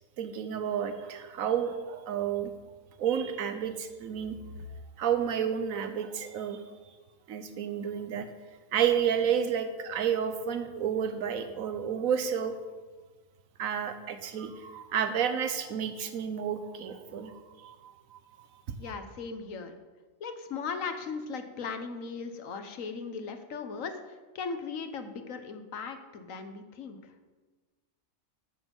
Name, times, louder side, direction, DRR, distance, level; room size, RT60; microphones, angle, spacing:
voice 1, 0.2-2.5 3.0-4.4 5.0-6.6 7.3-8.3 8.7-12.6 13.6-18.2, right 8 dB, 85° right, 8 dB, 1.3 m, -31 dB
voice 2, 18.8-19.7 20.2-27.0, left 5 dB, 75° left, 8 dB, 1.5 m, -38 dB
14.5 x 7.3 x 5.4 m, 1.3 s
omnidirectional pair, 1.4 m